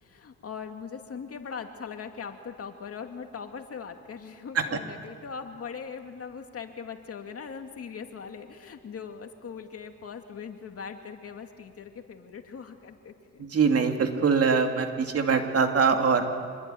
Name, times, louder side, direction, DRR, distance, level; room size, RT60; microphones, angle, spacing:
voice 1, 0.0-13.4, left 6 dB, 50° left, 5 dB, 2.4 m, -40 dB
voice 2, 13.4-16.3, right 5 dB, 50° right, 4 dB, 2.7 m, -23 dB
26.0 x 21.0 x 9.3 m, 2.2 s
cardioid pair, 90°, 30 cm